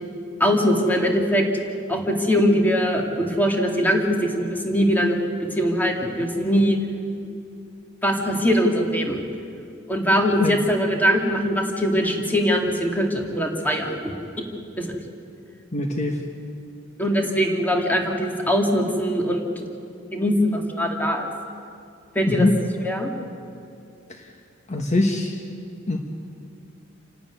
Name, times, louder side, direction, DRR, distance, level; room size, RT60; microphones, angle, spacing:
voice 1, 0.4-1.4 1.9-5.2 5.5-6.8 8.0-9.2 9.9-14.0 14.4-14.5 14.8-14.9 17.0-19.7 20.1-21.3 22.1-22.5 22.9-23.1, equal, 10° left, 1 dB, 2.4 m, -21 dB
voice 2, 15.7-16.2 22.3-22.5 24.1-24.3 24.7-25.4 25.9-26.0, left 2 dB, 35° left, 3 dB, 1.4 m, -22 dB
28.0 x 12.5 x 9.6 m, 2.5 s
head